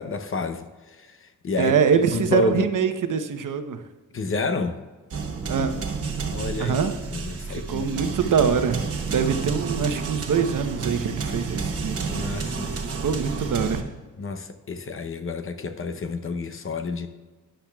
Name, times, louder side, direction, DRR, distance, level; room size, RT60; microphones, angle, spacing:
voice 1, 0.0-1.7 2.1-2.7 4.1-4.8 6.3-6.8 7.1-8.3 12.1-12.7 14.2-17.1, left 3 dB, 40° left, 8 dB, 0.7 m, -29 dB
voice 2, 1.6-3.8 5.5-5.7 6.6-6.9 7.7-12.1 13.0-13.9, right 6 dB, 75° right, 8 dB, 0.8 m, -24 dB
sound 1, 5.1-13.8, right 4 dB, 50° right, 1.0 m, -30 dB
13.0 x 10.0 x 2.3 m, 1.3 s
wide cardioid pair, 165°, 32 cm